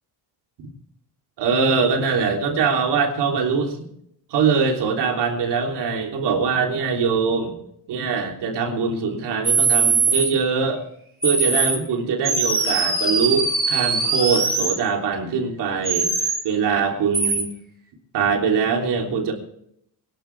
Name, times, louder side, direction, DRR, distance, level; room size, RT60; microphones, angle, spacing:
voice 1, 1.4-3.8 4.3-7.5 7.9-10.8 11.2-16.1 16.4-17.5 18.1-19.3, right 5 dB, 85° right, 1 dB, 3.4 m, -22 dB
sound 1, 9.4-10.3 11.2-11.8 12.2-14.8 15.8-16.4 17.1-17.4, right 4 dB, 25° right, 3.7 m, -21 dB
24.0 x 11.5 x 3.4 m, 0.72 s
cardioid pair, 95°, 40 cm